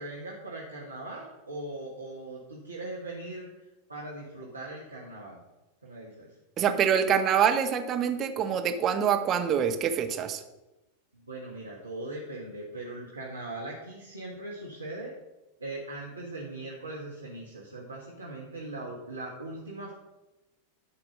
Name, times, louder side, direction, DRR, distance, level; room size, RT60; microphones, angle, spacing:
voice 1, 0.0-3.5 3.9-5.4 5.8-6.4 11.1-15.1 15.6-19.9, right 2 dB, 80° right, -3 dB, 1.5 m, -40 dB
voice 2, 6.6-10.4, right 8 dB, 30° right, 6 dB, 1.0 m, -25 dB
11.5 x 4.7 x 6.4 m, 1.0 s
figure-of-eight pair, 90°, 0 cm